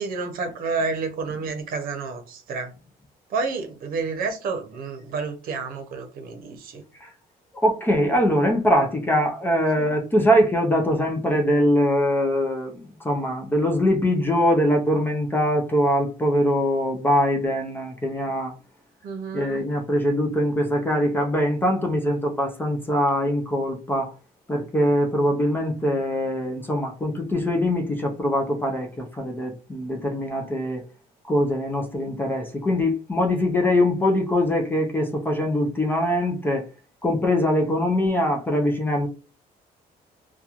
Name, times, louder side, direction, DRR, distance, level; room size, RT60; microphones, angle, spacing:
voice 1, 0.0-2.7 3.3-6.8 9.8-9.9 19.0-19.7, right 4 dB, 65° right, 0.7 m, -30 dB
voice 2, 7.6-18.5 19.3-24.1 24.5-30.8 31.3-36.7 37.0-39.1, equal, 10° left, 0.4 m, -22 dB
2.9 x 2.2 x 2.4 m
cardioid pair, 180°, 16 cm